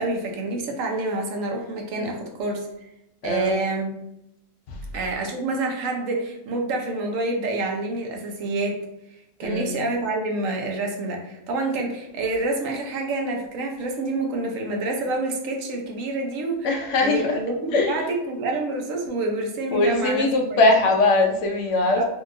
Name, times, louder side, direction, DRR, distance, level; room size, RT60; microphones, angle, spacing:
voice 1, 0.0-2.7 3.2-3.9 4.9-8.8 9.4-16.7 17.0-20.6 22.0-22.1, right 2 dB, 90° right, 2 dB, 1.0 m, -27 dB
voice 2, 3.2-3.6 4.7-4.8 9.4-9.8 16.6-17.4 17.7-18.0 19.7-22.0, left 2 dB, 75° left, 2 dB, 0.9 m, -21 dB
2.8 x 2.7 x 2.5 m, 0.84 s
omnidirectional pair, 1.3 m